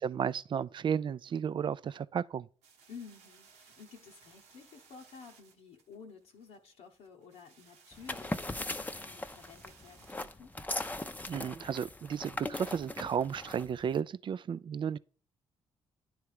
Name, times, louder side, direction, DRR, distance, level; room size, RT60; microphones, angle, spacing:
voice 1, 0.0-2.5 11.3-15.0, right 8 dB, 45° right, 0.4 m, -33 dB
sound 1, 2.6-12.0, right 5 dB, 85° right, 1.0 m, -62 dB
voice 2, 2.9-10.5, left 6 dB, 75° left, 0.9 m, -52 dB
sound 2, 7.9-14.0, left 2 dB, 15° left, 0.6 m, -39 dB
9.8 x 3.4 x 4.8 m
supercardioid pair, 55°, 11 cm